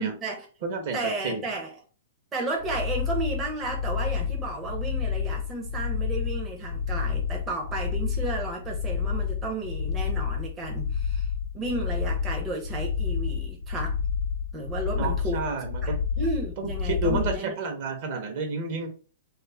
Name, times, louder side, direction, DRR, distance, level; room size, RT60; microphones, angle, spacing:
voice 1, 0.0-0.5 0.9-1.8 2.3-11.3 11.5-14.0 14.5-15.4 15.8-17.5, right 2 dB, 20° right, 0.5 m, -33 dB
voice 2, 0.6-1.4 14.9-16.0 16.6-18.9, right 3 dB, 50° right, 0.7 m, -30 dB
sound 1, 2.6-17.4, left 6 dB, 85° left, 0.4 m, -29 dB
2.4 x 2.0 x 3.1 m
hypercardioid pair, 145°, 0 cm